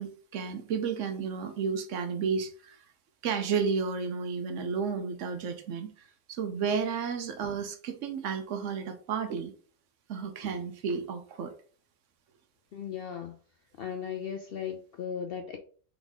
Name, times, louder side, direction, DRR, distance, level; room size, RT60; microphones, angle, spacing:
voice 1, 0.0-2.8 3.2-9.5 10.1-11.5, right 6 dB, 70° right, 0.9 m, -32 dB
voice 2, 12.7-13.4 13.8-15.6, left 8 dB, 65° left, 0.5 m, -36 dB
3.9 x 3.5 x 3.5 m
omnidirectional pair, 1.4 m